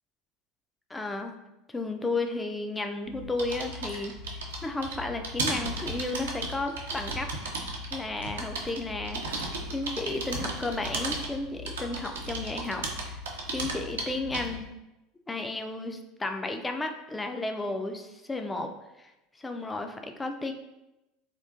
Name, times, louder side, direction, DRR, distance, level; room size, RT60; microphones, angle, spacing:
voice 1, 0.9-1.3 1.7-4.1 4.6-7.3 7.9-9.3 9.7-13.2 13.5-14.7 15.3-18.7 19.0-19.1 19.4-20.5, left 2 dB, 15° left, 5 dB, 0.3 m, -33 dB
sound 1, 3.1-14.7, right 2 dB, 70° right, 0.4 m, -35 dB
3.6 x 2.4 x 2.4 m, 0.95 s
figure-of-eight pair, 70°, 0 cm